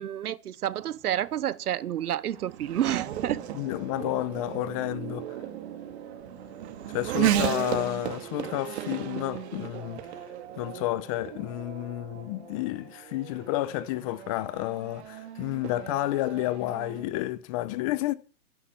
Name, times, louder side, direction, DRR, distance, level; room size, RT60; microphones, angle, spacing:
voice 1, 0.0-3.4, right 11 dB, 75° right, 1.0 m, -30 dB
Race car auto racing / Accelerating revving vroom, 0.8-17.0, right 12 dB, 45° right, 2.3 m, -35 dB
sound 1, 2.7-12.8, left 9 dB, 75° left, 5.7 m, -55 dB
voice 2, 3.5-5.3 6.9-10.0 10.6-18.1, left 16 dB, 25° left, 0.7 m, -31 dB
15.5 x 10.5 x 6.0 m
hypercardioid pair, 150°, 45 cm